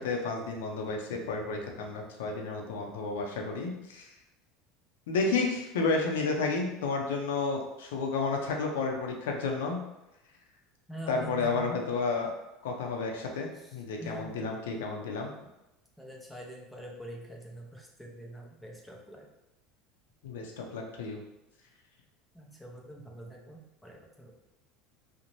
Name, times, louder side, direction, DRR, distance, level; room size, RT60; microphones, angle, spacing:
voice 1, 0.0-4.1 5.1-9.8 11.1-12.3 12.6-15.3 20.2-21.2, left 4 dB, 85° left, 1 dB, 0.5 m, -31 dB
voice 2, 10.9-11.7 13.5-14.5 16.0-19.3 22.3-24.3, right 2 dB, 5° left, 0 dB, 0.6 m, -44 dB
2.6 x 2.1 x 3.0 m, 0.96 s
supercardioid pair, 105°, 0 cm